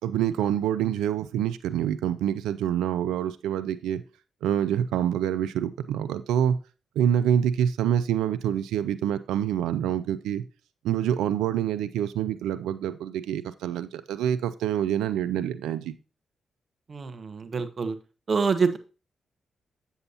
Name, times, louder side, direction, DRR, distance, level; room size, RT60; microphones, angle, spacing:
voice 1, 0.0-4.0 4.4-6.6 7.0-10.4 10.8-15.9, right 10 dB, 80° right, 12 dB, 0.3 m, -26 dB
voice 2, 16.9-18.0 18.3-18.8, right 5 dB, 50° right, 9 dB, 1.0 m, -26 dB
7.8 x 6.9 x 2.8 m, 0.34 s
hypercardioid pair, 40°, 0 cm